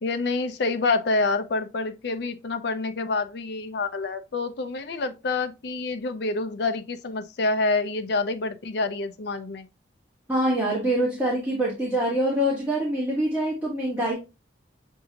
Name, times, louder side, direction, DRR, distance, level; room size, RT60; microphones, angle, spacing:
voice 1, 0.0-9.7, left 3 dB, 60° left, 0.5 m, -27 dB
voice 2, 10.3-14.1, right 1 dB, 10° right, 1.1 m, -25 dB
6.6 x 2.7 x 2.7 m
head